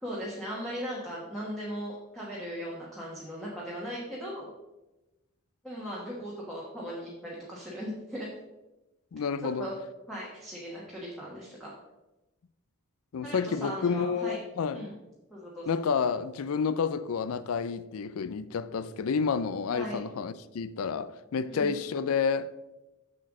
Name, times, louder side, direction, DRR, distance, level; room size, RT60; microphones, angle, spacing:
voice 1, 0.0-4.5 5.6-8.3 9.4-9.7 10.1-11.7 13.2-14.4 14.7-14.9 15.3-15.7 19.7-20.0 21.5-21.8, equal, ahead, 1.3 m, -38 dB
voice 2, 9.1-9.7 13.1-14.9 15.7-22.5, left 6 dB, 70° left, 0.4 m, -30 dB
7.6 x 6.7 x 3.8 m
head